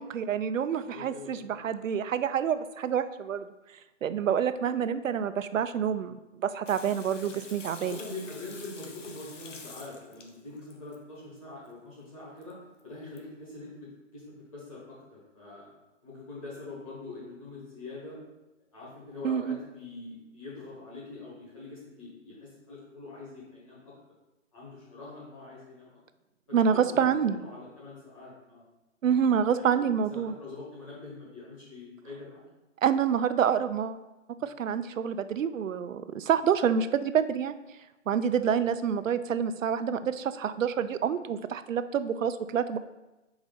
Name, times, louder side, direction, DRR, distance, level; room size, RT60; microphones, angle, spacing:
voice 1, 0.0-3.4 4.0-8.0 19.2-19.6 26.5-27.4 29.0-30.3 32.8-34.0 34.4-37.6 38.1-42.8, right 8 dB, 80° right, 12 dB, 0.6 m, -27 dB
voice 2, 0.7-1.5 7.2-7.3 7.6-12.6 12.8-14.2 14.5-15.7 16.0-18.2 18.7-23.9 24.5-26.0 26.7-28.6 29.5-32.4 34.4-34.5 38.4-38.5, left 2 dB, 25° left, -8 dB, 1.7 m, -44 dB
Water tap faucet / Sink (filling or washing), 6.7-11.0 12.4-12.5 12.8-12.9 13.2-13.3, left 4 dB, 70° left, 1.1 m, -47 dB
4.9 x 4.0 x 5.5 m, 1.0 s
hypercardioid pair, 175°, 38 cm